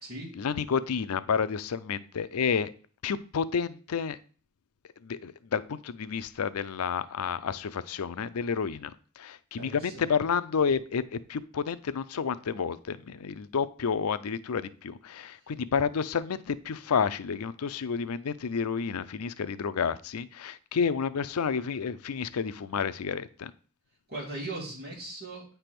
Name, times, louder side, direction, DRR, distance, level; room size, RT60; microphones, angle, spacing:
voice 1, 0.3-2.7 3.0-4.2 5.0-11.0 11.3-23.5, left 6 dB, 85° left, 14 dB, 0.5 m, -30 dB
voice 2, 9.6-10.0 24.1-25.6, right 2 dB, 45° right, -3 dB, 2.3 m, -39 dB
9.0 x 3.4 x 5.9 m, 0.41 s
head